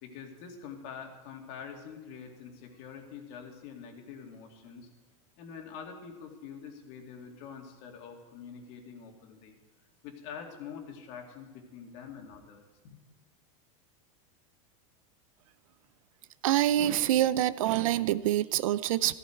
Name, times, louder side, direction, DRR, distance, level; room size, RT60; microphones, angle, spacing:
voice 1, 0.0-4.9 5.4-9.5 10.0-13.0, left 6 dB, 55° left, 2 dB, 2.6 m, -45 dB
voice 2, 16.4-19.1, right 13 dB, 85° right, 15 dB, 0.5 m, -26 dB
14.5 x 14.0 x 4.6 m, 1.2 s
supercardioid pair, 145°, 17 cm